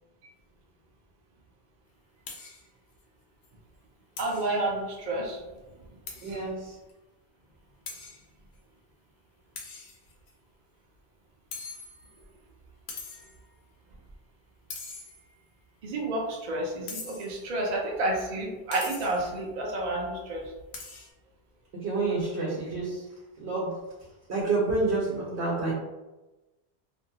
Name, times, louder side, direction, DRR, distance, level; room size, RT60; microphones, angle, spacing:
sound 1, 2.3-2.7 3.0-3.1 3.4-3.5 4.2-4.5 6.1-6.4 6.9-7.0 7.9-8.2 9.6-10.3 11.5-12.2 12.9-13.4 14.7-15.4 16.9-17.4 18.7-19.3 20.7-21.1, left 4 dB, 80° left, 0.8 m, -42 dB
voice 1, 4.2-5.4 6.3-6.4 15.8-20.5, right 2 dB, 50° right, -1 dB, 0.6 m, -30 dB
voice 2, 6.2-6.8 21.7-23.1 23.4-23.8 24.3-25.7, right 3 dB, 90° right, -5 dB, 0.9 m, -28 dB
2.6 x 2.2 x 2.7 m, 1.1 s
omnidirectional pair, 1.1 m